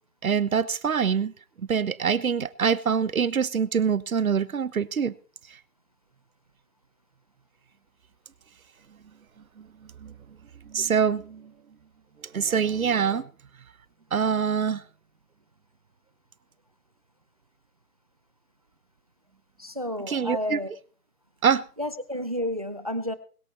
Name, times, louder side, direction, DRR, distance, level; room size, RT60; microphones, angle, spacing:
voice 1, 0.2-1.3 1.7-5.1 9.6-9.7 10.0-10.1 10.7-11.5 12.3-13.3 14.1-14.8 20.1-20.6 21.4-21.7, right 7 dB, 65° right, 1.2 m, -24 dB
voice 2, 19.6-20.7 21.8-23.1, left 1 dB, 25° right, 0.5 m, -31 dB
21.5 x 8.4 x 4.2 m
figure-of-eight pair, 150°, 46 cm